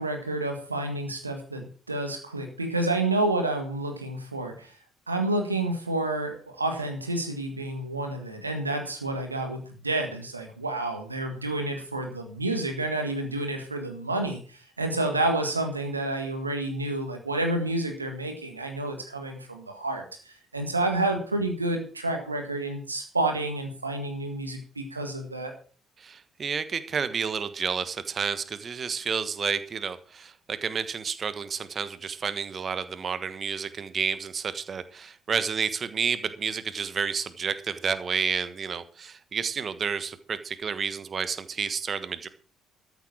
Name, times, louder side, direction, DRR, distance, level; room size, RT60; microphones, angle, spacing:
voice 1, 0.0-4.7 5.1-25.5, right 2 dB, 90° right, 5 dB, 1.8 m, -29 dB
voice 2, 26.0-42.3, right 6 dB, 40° right, 13 dB, 1.3 m, -30 dB
13.5 x 8.1 x 6.2 m, 0.42 s
figure-of-eight pair, 50°, 0 cm